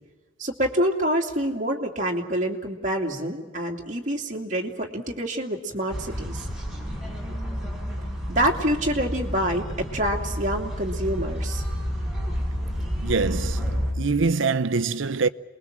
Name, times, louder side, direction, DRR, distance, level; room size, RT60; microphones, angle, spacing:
voice 1, 0.4-6.4 8.3-11.6, right 1 dB, 40° right, 2.7 m, -26 dB
sound 1, 5.9-13.9, equal, 5° right, 5.8 m, -30 dB
voice 2, 13.0-15.3, right 4 dB, 75° right, 0.7 m, -24 dB
28.0 x 21.5 x 7.5 m
head